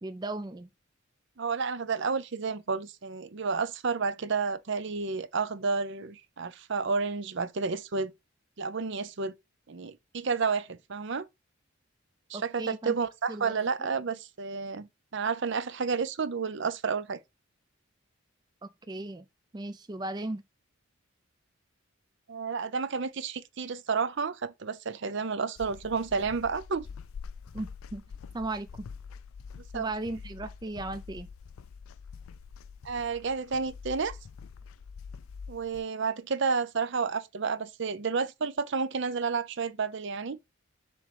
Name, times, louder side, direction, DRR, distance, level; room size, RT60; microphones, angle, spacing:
voice 1, 0.0-0.7 12.3-13.0 13.3-13.6 18.6-19.3 19.5-20.4 27.5-28.0 28.3-28.9 29.7-31.3, right 2 dB, 20° right, 0.4 m, -36 dB
voice 2, 1.4-8.1 8.6-9.3 9.7-11.2 12.3-17.2 22.3-26.8 29.7-29.9 32.8-34.2 35.5-40.4, right 5 dB, 60° right, 0.6 m, -31 dB
sound 1, 25.6-35.8, left 5 dB, 90° left, 0.4 m, -45 dB
7.1 x 3.1 x 5.0 m
head